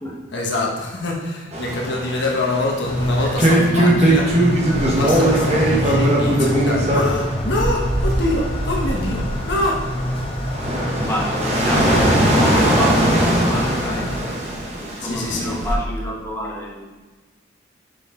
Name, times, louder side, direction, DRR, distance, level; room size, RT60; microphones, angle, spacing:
voice 1, 0.3-4.5 4.8-9.9 15.0-15.6, left 1 dB, 65° left, -1 dB, 1.3 m, -25 dB
sound 1, 1.5-15.7, right 1 dB, 35° right, 1.4 m, -20 dB
sound 2, 2.8-14.2, left 1 dB, 30° left, 0.7 m, -27 dB
voice 2, 10.9-14.3 14.8-16.9, equal, 15° left, -5 dB, 1.2 m, -27 dB
6.6 x 5.3 x 3.7 m, 1.3 s
head